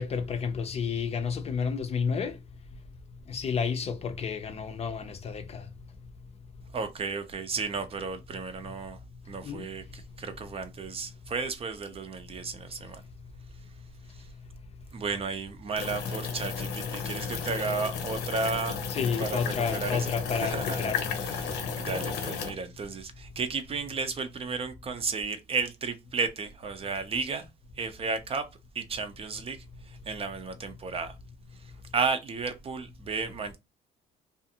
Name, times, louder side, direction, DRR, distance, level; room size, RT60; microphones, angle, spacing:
voice 1, 0.0-2.4 3.3-5.7 9.4-9.7 18.9-21.1, left 6 dB, 40° left, 0.5 m, -31 dB
voice 2, 6.7-9.0 9.3-13.0 14.1-14.3 14.9-18.8 19.2-27.5 27.8-28.5 28.7-31.1 31.6-33.6, right 4 dB, 35° right, 0.5 m, -33 dB
sound 1, 15.8-22.5, left 6 dB, 90° left, 0.7 m, -33 dB
2.4 x 2.4 x 2.7 m
cardioid pair, 110°, 17 cm